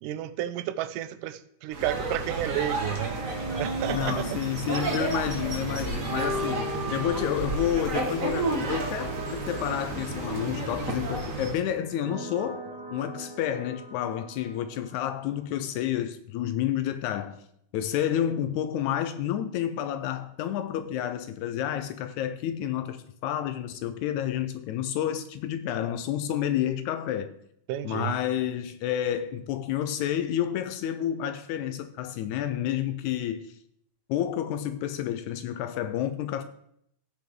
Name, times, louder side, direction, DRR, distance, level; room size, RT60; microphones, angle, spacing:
voice 1, 0.0-3.2 3.6-4.4 27.7-28.1, right 12 dB, 90° right, 2.2 m, -31 dB
sound 1, 1.7-11.6, right 3 dB, 45° right, 1.1 m, -32 dB
sound 2, 2.9-15.8, equal, 70° right, 1.0 m, -39 dB
voice 2, 3.9-12.6 12.9-17.4 17.7-27.4 27.8-33.5 34.1-36.4, left 10 dB, 80° left, 1.8 m, -30 dB
15.5 x 6.4 x 3.7 m
omnidirectional pair, 3.7 m